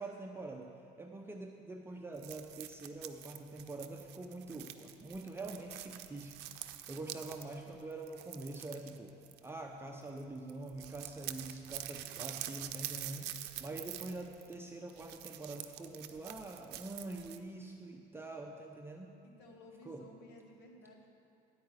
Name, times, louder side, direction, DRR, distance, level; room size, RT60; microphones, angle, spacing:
voice 1, 0.0-6.4 6.9-9.1 9.4-19.2 19.9-20.0, right 2 dB, 15° right, 1 dB, 0.5 m, -45 dB
sound 1, 2.2-9.8 10.1-10.2 10.5-17.4, right 13 dB, 85° right, 0.5 m, -46 dB
voice 2, 19.2-21.1, left 1 dB, 80° left, 2 dB, 1.3 m, -56 dB
10.5 x 4.7 x 8.1 m, 2.7 s
cardioid pair, 110°, 17 cm